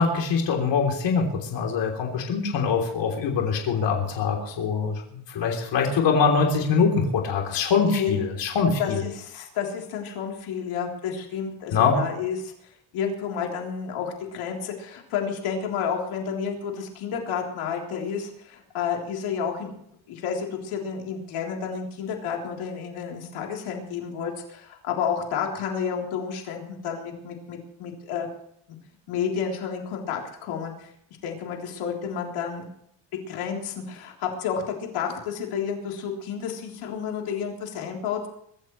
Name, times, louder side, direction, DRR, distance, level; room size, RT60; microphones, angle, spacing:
voice 1, 0.0-9.0 11.7-12.0, left 5 dB, 60° left, 1 dB, 3.4 m, -23 dB
voice 2, 7.7-8.2 8.8-12.5 12.9-19.7 20.1-28.3 29.1-30.9 31.2-32.7 33.3-34.6 34.9-38.3, left 7 dB, 85° left, 0 dB, 3.6 m, -30 dB
24.5 x 14.0 x 3.2 m, 0.74 s
cardioid pair, 155°, 48 cm